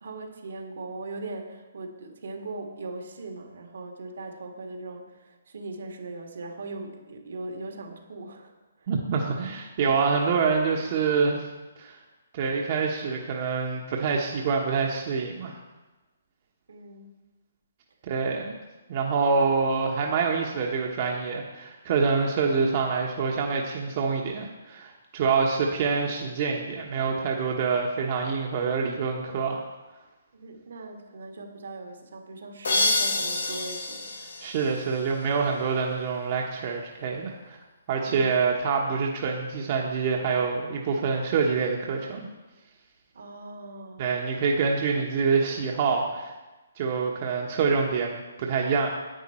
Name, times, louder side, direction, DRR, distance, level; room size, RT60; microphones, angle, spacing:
voice 1, 0.0-8.5 8.8-8.9 16.7-17.2 30.3-34.1 43.1-44.0, right 2 dB, 75° right, 3 dB, 1.8 m, -39 dB
voice 2, 8.9-11.4 11.8-12.0 12.3-15.6 18.0-18.6 18.9-29.6 34.4-37.6 37.9-42.3 44.0-46.3 46.8-48.9, right 5 dB, 40° right, 0 dB, 1.1 m, -26 dB
sound 1, 32.6-35.4, left 2 dB, 85° left, 1.9 m, -28 dB
10.0 x 8.4 x 4.4 m, 1.1 s
hypercardioid pair, 145°, 0 cm